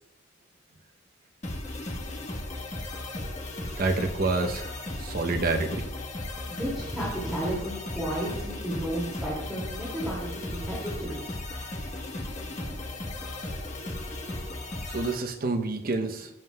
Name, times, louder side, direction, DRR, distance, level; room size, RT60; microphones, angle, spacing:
sound 1, 1.4-15.1, left 1 dB, 35° left, 1.2 m, -36 dB
voice 1, 3.8-4.7 5.0-5.9 14.9-16.3, right 3 dB, 50° right, 6 dB, 0.8 m, -28 dB
voice 2, 6.5-11.3, right 1 dB, ahead, -8 dB, 2.4 m, -33 dB
15.0 x 7.5 x 2.3 m, 0.87 s
head